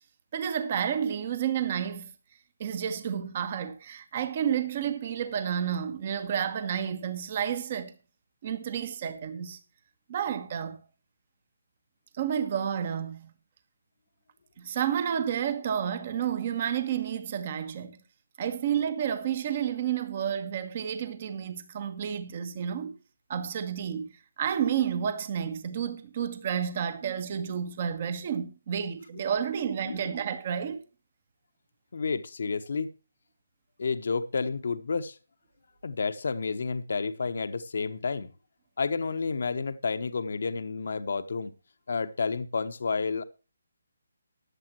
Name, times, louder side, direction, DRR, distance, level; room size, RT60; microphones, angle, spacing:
voice 1, 0.3-2.1 2.6-7.9 8.4-9.6 10.1-10.8 12.1-13.3 14.6-18.0 18.4-22.9 23.3-24.1 24.4-30.8, right 8 dB, 40° right, 1.5 m, -30 dB
voice 2, 31.9-32.9 33.8-35.2 35.8-38.3 38.8-41.5 41.9-43.2, left 4 dB, 60° left, 1.1 m, -30 dB
15.0 x 10.5 x 3.1 m
figure-of-eight pair, 150°, 0 cm